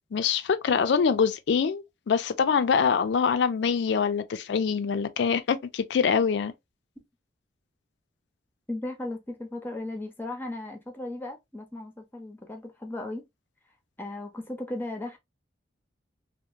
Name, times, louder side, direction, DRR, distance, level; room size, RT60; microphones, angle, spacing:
voice 1, 0.1-6.5, left 6 dB, 65° left, 0.3 m, -24 dB
voice 2, 8.7-13.2 14.0-15.2, left 2 dB, 10° left, 0.5 m, -36 dB
2.8 x 2.0 x 2.4 m
head